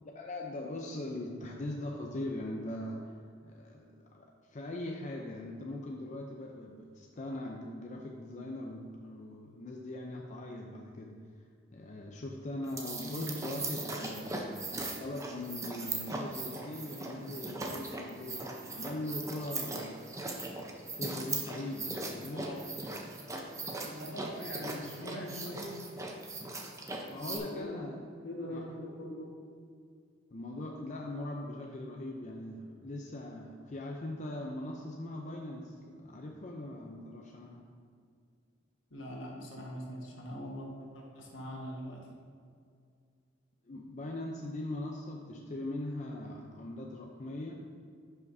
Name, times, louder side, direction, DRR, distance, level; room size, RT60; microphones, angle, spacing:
voice 1, 0.0-3.1 3.4-11.2 11.7-14.4 15.0-20.0 20.6-22.5 27.1-28.0 28.5-28.6 30.3-37.6 43.7-47.7, left 1 dB, 40° left, 0 dB, 0.5 m, -41 dB
sound 1, 12.6-27.4, right 2 dB, 15° right, 0.7 m, -39 dB
voice 2, 13.0-13.4 22.2-22.6 23.6-25.8 27.1-27.9 28.2-29.4 38.9-42.1, left 1 dB, 75° left, -2 dB, 1.5 m, -42 dB
10.5 x 5.7 x 2.7 m, 2.2 s
head